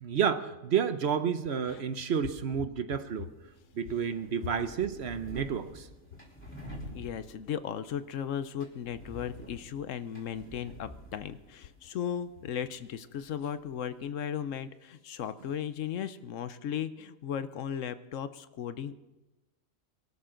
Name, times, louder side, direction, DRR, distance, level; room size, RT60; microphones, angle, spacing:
voice 1, 0.0-3.3 3.7-5.9, right 7 dB, 55° right, 11 dB, 1.0 m, -30 dB
sound 1, 3.1-14.1, equal, 10° left, 3.7 m, -49 dB
voice 2, 6.9-19.0, left 8 dB, 70° left, 13 dB, 1.0 m, -36 dB
23.0 x 12.5 x 3.8 m, 1.1 s
omnidirectional pair, 1.4 m